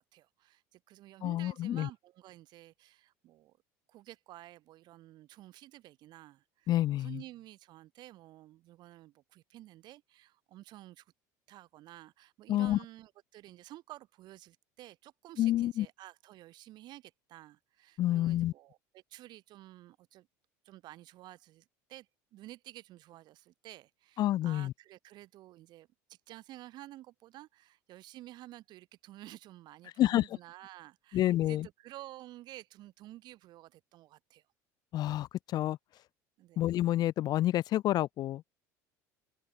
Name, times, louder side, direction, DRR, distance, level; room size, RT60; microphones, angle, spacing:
voice 1, 0.0-3.6 3.9-11.0 11.5-20.3 20.6-34.4 36.4-36.6, right 15 dB, 60° right, 4.5 m, -52 dB
voice 2, 1.2-1.9 6.7-7.2 12.5-12.8 15.4-15.9 18.0-18.5 24.2-24.7 30.0-30.2 31.1-31.7 34.9-35.8 36.6-38.6, left 14 dB, 50° left, 1.0 m, -29 dB
open air
supercardioid pair, 95°, 8 cm